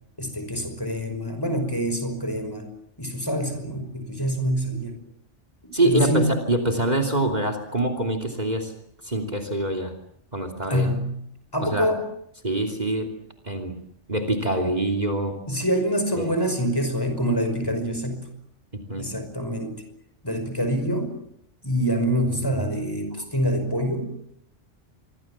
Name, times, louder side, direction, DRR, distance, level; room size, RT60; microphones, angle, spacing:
voice 1, 0.2-2.7 3.0-5.0 5.6-6.3 10.7-11.2 11.5-12.0 15.5-18.3 19.0-19.8 20.2-21.1 21.6-24.1, equal, 20° left, 7 dB, 5.5 m, -26 dB
voice 2, 5.7-8.7 9.0-9.9 10.3-10.9 11.6-11.9 12.4-13.1 13.4-13.8 14.1-15.4 16.2-16.3 18.7-19.1 23.2-23.3, right 2 dB, 35° right, 7 dB, 3.1 m, -25 dB
27.0 x 24.0 x 7.4 m, 0.73 s
omnidirectional pair, 1.3 m